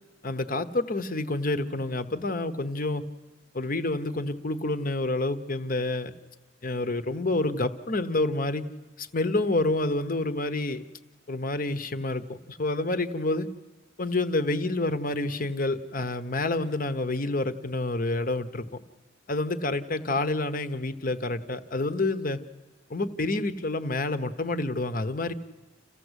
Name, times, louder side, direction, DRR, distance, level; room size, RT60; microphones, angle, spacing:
voice 1, 0.2-3.0 3.5-6.1 6.6-8.7 9.0-10.8 11.3-13.5 14.0-18.7 19.3-22.4 22.9-25.3, left 2 dB, 50° left, 10 dB, 1.1 m, -28 dB
28.0 x 15.5 x 8.2 m, 1.3 s
head